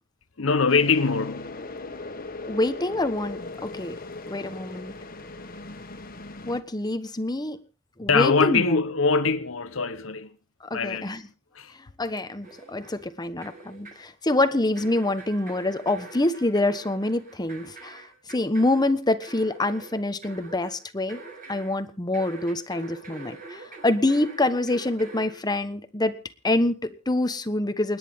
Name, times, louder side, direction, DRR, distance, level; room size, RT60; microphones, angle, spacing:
voice 1, 0.4-1.6 8.1-10.3 10.7-11.2 11.5-11.7, left 4 dB, 85° left, 1.0 m, -23 dB
sound 1, 0.7-6.6, left 2 dB, 45° left, 1.8 m, -38 dB
voice 2, 2.5-4.0 4.3-4.9 6.5-7.6 8.0-8.8 10.7-11.2 12.0-21.2 21.5-26.2 26.4-28.0, left 2 dB, 20° left, 1.2 m, -26 dB
sound 2, 12.4-13.1 13.4-14.1 14.7-21.8 22.1-25.4, right 3 dB, 45° right, 7.3 m, -45 dB
29.0 x 10.0 x 3.6 m
head